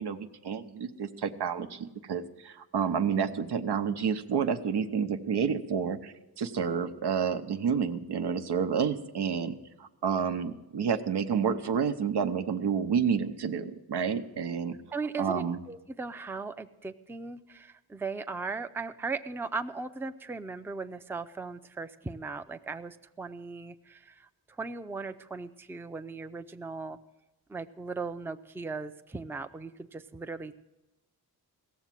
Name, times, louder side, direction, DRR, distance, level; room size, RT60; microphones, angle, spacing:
voice 1, 0.0-14.8 15.2-15.6, right 7 dB, 85° right, 8 dB, 0.8 m, -30 dB
voice 2, 14.9-27.0 27.5-30.6, right 4 dB, 5° right, 9 dB, 0.4 m, -38 dB
17.0 x 7.2 x 7.5 m, 1.0 s
wide cardioid pair, 100°, 39 cm